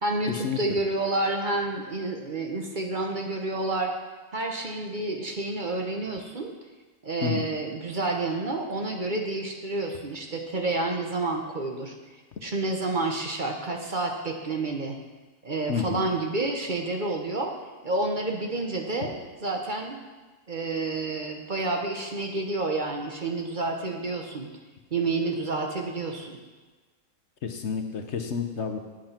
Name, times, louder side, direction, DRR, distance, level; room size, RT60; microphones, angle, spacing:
voice 1, 0.0-3.9 4.3-6.5 7.0-11.9 12.4-14.9 15.4-17.5 17.8-20.0 20.5-24.5 24.9-26.4, right 2 dB, 40° right, 2 dB, 1.1 m, -29 dB
voice 2, 15.7-16.0 27.4-28.8, left 6 dB, 60° left, 6 dB, 1.1 m, -29 dB
8.8 x 8.1 x 5.8 m, 1.3 s
omnidirectional pair, 1.4 m